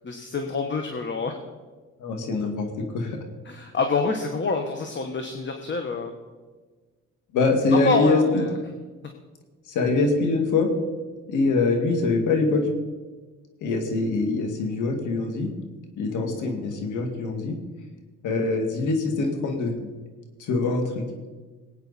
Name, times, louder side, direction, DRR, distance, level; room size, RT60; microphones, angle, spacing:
voice 1, 0.0-1.4 3.5-6.1 7.8-8.5, left 4 dB, 40° left, 5 dB, 1.3 m, -27 dB
voice 2, 2.0-3.2 7.3-8.5 9.7-10.7 11.3-12.6 13.6-15.5 16.0-17.6 18.2-19.7 20.4-21.0, left 3 dB, 85° left, 4 dB, 2.2 m, -24 dB
19.5 x 8.9 x 4.2 m, 1.3 s
cardioid pair, 90°, 30 cm